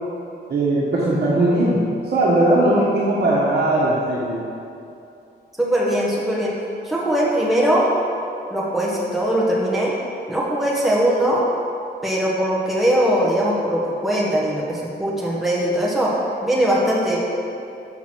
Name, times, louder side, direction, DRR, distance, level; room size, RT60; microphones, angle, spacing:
voice 1, 0.5-1.8 2.1-4.4, right 1 dB, 60° right, -7 dB, 1.2 m, -19 dB
voice 2, 5.6-6.6 6.8-7.9 8.5-9.9 10.3-11.4 12.0-16.1 16.4-17.2, equal, ahead, -6 dB, 1.2 m, -20 dB
6.1 x 5.9 x 6.0 m, 2.7 s
wide cardioid pair, 150°, 18 cm